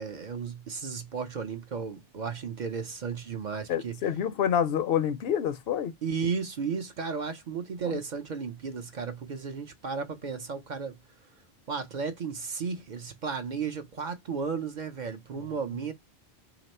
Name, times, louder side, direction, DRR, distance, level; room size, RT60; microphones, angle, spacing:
voice 1, 0.0-4.0 6.0-11.0 11.7-15.9, right 5 dB, 50° right, 0.6 m, -34 dB
voice 2, 3.7-5.9 15.3-15.5, left 9 dB, 70° left, 0.7 m, -27 dB
2.9 x 2.9 x 4.2 m
omnidirectional pair, 1.1 m